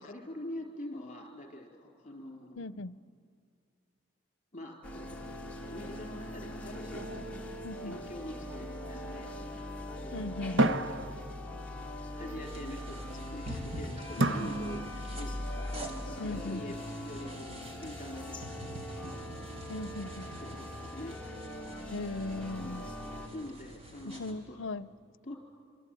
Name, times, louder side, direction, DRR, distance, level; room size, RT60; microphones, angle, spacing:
voice 1, 0.0-2.8 4.5-4.8 5.6-9.3 10.0-10.7 12.2-15.4 15.7-19.5 20.4-21.2 22.6-22.8 23.3-24.6 25.2-25.4, left 1 dB, 35° left, 4 dB, 4.0 m, -45 dB
voice 2, 2.6-3.0 7.6-8.0 10.1-10.7 14.2-14.5 16.2-16.6 19.7-20.3 21.9-22.9 24.2-24.9, left 2 dB, 90° left, 18 dB, 0.6 m, -38 dB
sound 1, 4.8-23.3, equal, 5° left, 2.3 m, -41 dB
timp modhits, 6.9-8.5 10.6-12.0 14.2-15.3, right 2 dB, 80° right, 1.1 m, -32 dB
sound 2, 12.4-24.3, equal, 30° right, 3.7 m, -46 dB
26.5 x 25.0 x 9.2 m, 2.2 s
head